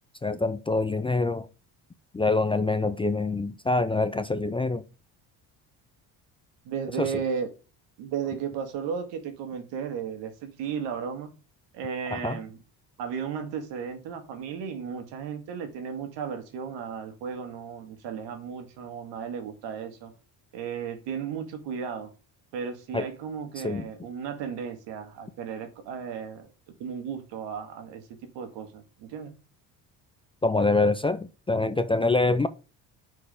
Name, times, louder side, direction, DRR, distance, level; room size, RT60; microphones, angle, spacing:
voice 1, 0.2-1.5 2.1-4.8 7.0-7.1 12.1-12.4 22.9-23.1 23.6-23.9 30.4-32.5, left 3 dB, 15° left, 0.4 m, -25 dB
voice 2, 6.7-7.5 8.0-11.3 11.7-12.6 13.0-20.1 20.5-22.1 22.5-26.5 26.8-28.0 28.3-29.3, right 7 dB, 85° right, 1.8 m, -34 dB
9.5 x 4.6 x 3.5 m
cardioid pair, 100°, 43 cm